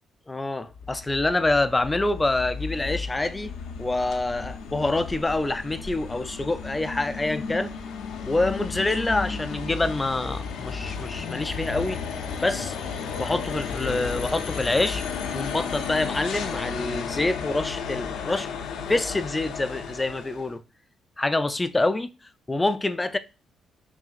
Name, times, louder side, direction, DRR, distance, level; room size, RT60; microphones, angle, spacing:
voice 1, 0.3-3.5 3.8-7.7 8.3-12.0 12.4-12.8 13.2-15.0 15.3-18.5 18.9-20.6 21.2-22.1 22.5-23.2, left 2 dB, 15° left, 0.3 m, -26 dB
sound 1, 0.7-20.5, left 5 dB, 90° left, 0.6 m, -33 dB
5.7 x 2.7 x 2.4 m
cardioid pair, 90°, 0 cm